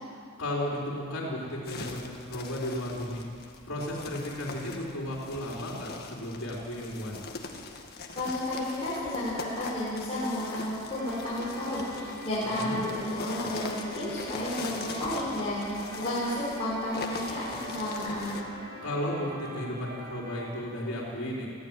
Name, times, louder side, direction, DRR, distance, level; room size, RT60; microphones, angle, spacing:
voice 1, 0.4-3.3 3.6-7.2 12.4-12.8 18.8-21.5, left 1 dB, 70° left, -5 dB, 4.3 m, -34 dB
sound 1, 1.6-18.4, left 4 dB, 50° left, 1.9 m, -42 dB
voice 2, 8.1-18.3, left 1 dB, 30° left, -10 dB, 6.4 m, -32 dB
sound 2, 10.9-20.7, equal, 50° right, 2.9 m, -43 dB
21.5 x 15.5 x 9.1 m, 2.4 s
head